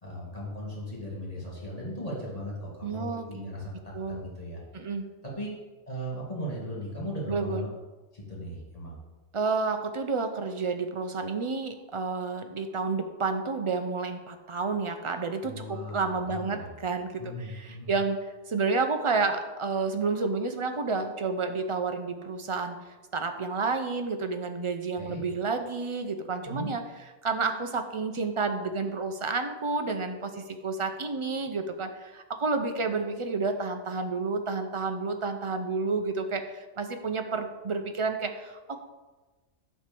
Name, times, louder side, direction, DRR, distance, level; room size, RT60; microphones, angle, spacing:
voice 1, 0.0-3.7 4.1-4.9 5.2-5.5 5.9-7.7 8.1-9.0 15.4-16.7 17.2-17.9 25.0-25.2 26.5-26.7, equal, 30° left, -4 dB, 2.0 m, -37 dB
voice 2, 2.8-3.5 3.9-4.2 4.7-5.0 7.3-7.7 9.3-22.8 23.1-26.8 27.2-38.8, right 4 dB, 40° right, 6 dB, 0.5 m, -30 dB
9.5 x 3.3 x 6.8 m, 1.2 s
omnidirectional pair, 1.2 m